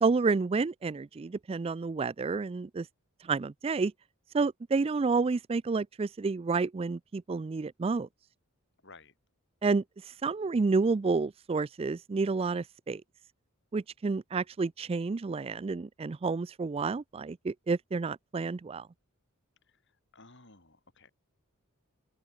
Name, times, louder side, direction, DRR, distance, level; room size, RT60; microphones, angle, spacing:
voice 1, 0.0-2.9 3.2-3.9 4.3-8.1 9.6-9.8 10.2-13.0 13.7-18.9, right 4 dB, 25° right, 0.3 m, -30 dB
voice 2, 8.8-9.2 19.6-21.1, left 3 dB, 55° left, 5.6 m, -56 dB
open air
head